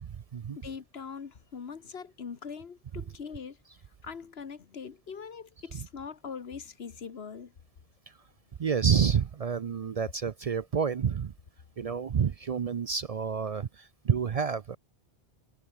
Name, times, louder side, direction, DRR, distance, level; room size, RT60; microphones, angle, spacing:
voice 1, 0.0-0.6 8.6-11.3 11.8-14.8, right 7 dB, 45° right, 0.5 m, -29 dB
voice 2, 0.6-3.6 4.0-7.5, left 6 dB, 85° left, 1.5 m, -42 dB
omnidirectional pair, 1.0 m